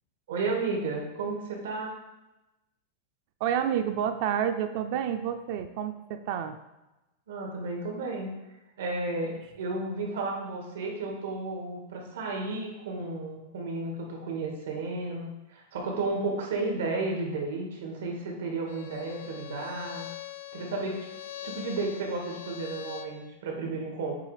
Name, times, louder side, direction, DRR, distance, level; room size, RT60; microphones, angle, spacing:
voice 1, 0.3-1.9 7.3-8.3 8.8-20.1 20.5-21.1 21.4-24.1, right 3 dB, 85° right, 0 dB, 2.0 m, -33 dB
voice 2, 3.4-6.6, right 9 dB, 40° right, 8 dB, 0.4 m, -29 dB
Bowed string instrument, 18.7-23.2, left 12 dB, 65° left, 0.6 m, -42 dB
8.3 x 3.3 x 5.0 m, 0.99 s
supercardioid pair, 180°, 0 cm